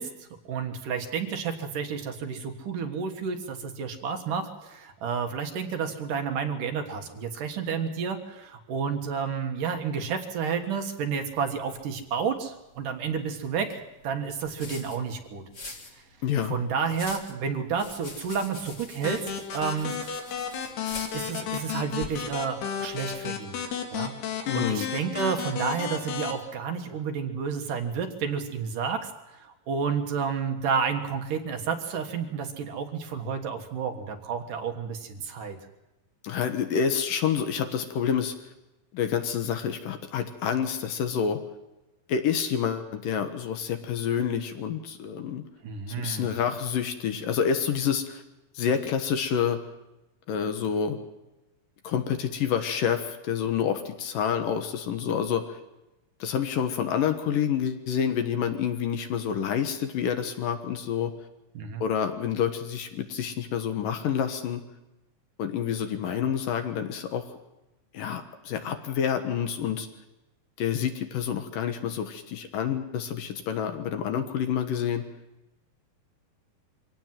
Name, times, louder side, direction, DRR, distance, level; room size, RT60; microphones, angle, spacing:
voice 1, 0.0-15.4 16.5-19.2 19.5-19.9 21.1-23.6 23.9-29.1 29.4-35.6 45.6-46.3 61.5-61.8, right 6 dB, 65° right, 5 dB, 2.8 m, -31 dB
sound 1, 11.2-23.3, left 2 dB, 30° left, 1.6 m, -46 dB
voice 2, 16.2-16.6 24.5-24.9 36.2-38.3 38.9-41.4 42.1-45.4 46.0-48.2 48.5-49.6 50.3-51.0 51.8-55.6 56.2-61.1 61.8-64.6 65.4-67.2 67.9-69.9 70.6-75.0, left 8 dB, 65° left, 7 dB, 2.9 m, -28 dB
sound 2, 19.0-26.3, left 7 dB, 90° left, 4.1 m, -33 dB
24.5 x 17.5 x 7.6 m, 0.96 s
omnidirectional pair, 4.4 m